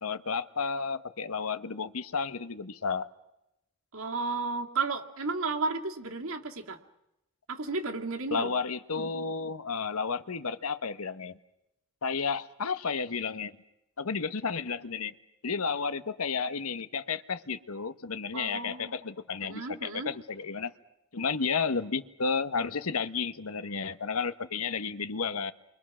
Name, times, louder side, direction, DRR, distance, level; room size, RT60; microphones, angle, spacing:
voice 1, 0.0-3.1 8.3-11.4 12.0-13.6 14.0-15.1 15.4-20.7 21.1-25.5, left 5 dB, 85° left, 13 dB, 1.0 m, -32 dB
voice 2, 3.9-6.8 7.5-8.5 18.3-18.9 19.4-20.1, right 4 dB, 75° right, 2 dB, 2.3 m, -33 dB
29.5 x 24.0 x 6.2 m, 0.89 s
head